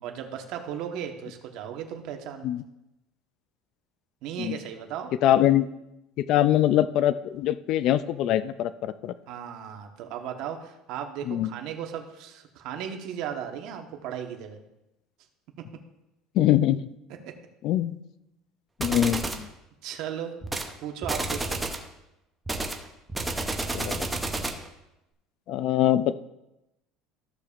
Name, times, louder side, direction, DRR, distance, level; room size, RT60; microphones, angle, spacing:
voice 1, 0.0-2.5 4.2-5.1 9.3-14.6 17.2-17.3 19.0-19.2 19.8-20.4 20.8-21.6, right 9 dB, 55° right, 4 dB, 1.1 m, -36 dB
voice 2, 5.2-5.7 6.2-9.1 11.3-11.5 16.4-16.9 17.6-18.0 18.8-19.5 23.7-24.1 25.5-26.1, left 12 dB, 50° left, 14 dB, 0.3 m, -23 dB
sound 1, 18.8-19.5 20.4-20.7 21.0-21.9 22.5-24.7, right 2 dB, 10° right, 0.7 m, -30 dB
14.5 x 6.8 x 2.4 m, 0.90 s
cardioid pair, 160°, 0 cm